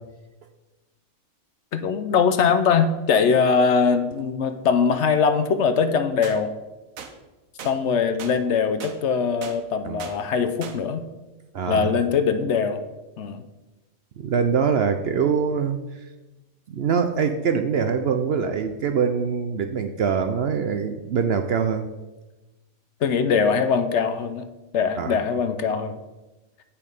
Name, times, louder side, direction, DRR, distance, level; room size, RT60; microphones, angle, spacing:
voice 1, 1.7-6.5 7.6-11.0 11.7-12.8 13.2-13.4 23.0-24.5 24.7-26.0, left 6 dB, 65° left, 9 dB, 0.8 m, -22 dB
sound 1, 6.2-6.4 7.0-7.1 7.6-7.7 8.2-8.4 8.8-9.0 9.4-9.6 10.0-10.2 10.6-10.8, right 7 dB, 85° right, 1.2 m, -37 dB
voice 2, 11.5-11.9 14.2-15.8 16.7-21.9 25.0-25.2, right 6 dB, 65° right, 7 dB, 0.7 m, -23 dB
8.4 x 5.6 x 5.3 m, 1.1 s
omnidirectional pair, 1.4 m